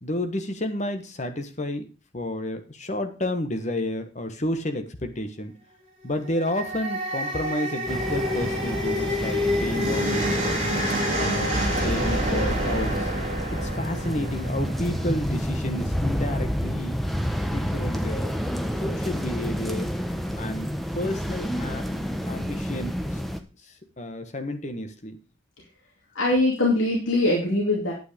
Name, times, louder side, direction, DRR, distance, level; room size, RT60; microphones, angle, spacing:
voice 1, 0.0-1.9 2.1-5.5 6.0-10.6 11.1-13.1 13.5-17.0 17.5-18.3 18.8-19.9 20.4-20.7 20.9-21.8 22.2-23.2 23.6-25.2, left 1 dB, 35° left, 7 dB, 1.4 m, -31 dB
sound 1, 6.2-15.5, equal, 30° right, 3.5 m, -28 dB
sound 2, 7.9-23.4, equal, ahead, 0.8 m, -29 dB
voice 2, 26.1-27.9, left 2 dB, 90° left, -1 dB, 2.5 m, -22 dB
9.3 x 8.8 x 5.1 m, 0.33 s
head